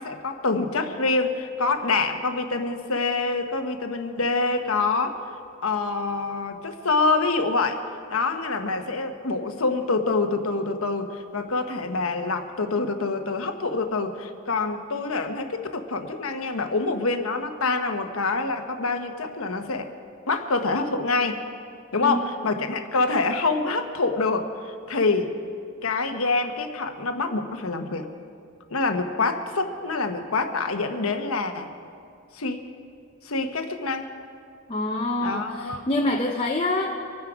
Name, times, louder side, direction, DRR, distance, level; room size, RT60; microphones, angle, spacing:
voice 1, 0.0-5.3 5.6-19.9 20.3-21.4 21.9-25.3 25.8-28.1 28.7-31.7 32.3-32.7 33.2-34.1 35.2-35.8, left 3 dB, 80° left, 6 dB, 1.2 m, -26 dB
voice 2, 34.7-37.0, left 2 dB, 25° left, 0 dB, 0.8 m, -26 dB
25.0 x 9.6 x 5.0 m, 2.4 s
head